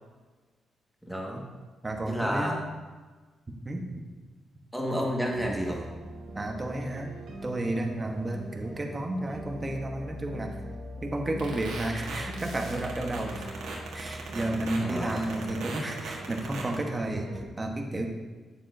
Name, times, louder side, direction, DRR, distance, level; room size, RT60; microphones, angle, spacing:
voice 1, 1.1-1.4 2.0-2.6 4.7-5.8 14.8-15.2, equal, ahead, -2 dB, 1.8 m, -30 dB
voice 2, 1.8-2.6 3.5-4.1 6.3-7.1 7.4-10.5 11.0-13.5 13.9-18.1, right 1 dB, 25° right, 2 dB, 1.2 m, -32 dB
sound 1, 5.3-17.4, equal, 70° right, 1.4 m, -41 dB
sound 2, 11.4-16.7, right 4 dB, 90° right, 1.6 m, -38 dB
9.1 x 7.3 x 2.8 m, 1.3 s
cardioid pair, 75°, 0 cm